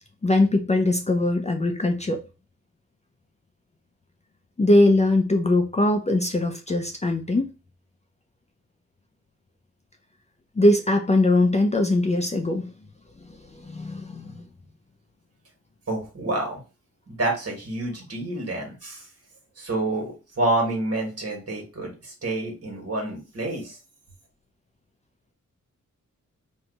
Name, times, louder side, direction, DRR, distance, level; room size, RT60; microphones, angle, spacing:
voice 1, 0.2-2.2 4.6-7.5 10.6-12.7 13.7-14.5, left 2 dB, 25° left, 0.4 m, -21 dB
voice 2, 15.9-16.6 17.1-19.0 19.6-23.8, right 2 dB, 50° right, 1.4 m, -28 dB
2.7 x 2.3 x 4.0 m
wide cardioid pair, 85°, 30 cm